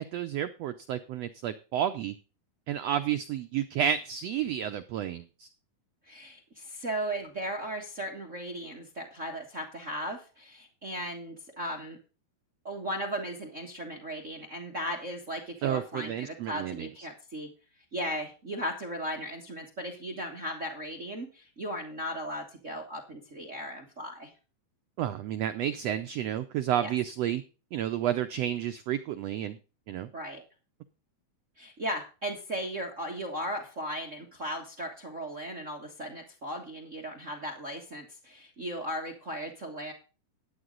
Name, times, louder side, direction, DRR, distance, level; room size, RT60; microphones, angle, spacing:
voice 1, 0.0-2.1 2.7-5.5 15.6-16.9 25.0-27.4 27.7-29.6 29.9-30.1, right 10 dB, 85° right, 9 dB, 1.4 m, -31 dB
voice 2, 6.1-12.0 12.6-17.5 17.9-24.3 26.8-26.9 30.1-30.4 31.6-39.9, equal, 35° right, 2 dB, 1.2 m, -36 dB
13.0 x 8.9 x 3.9 m, 0.33 s
omnidirectional pair, 3.8 m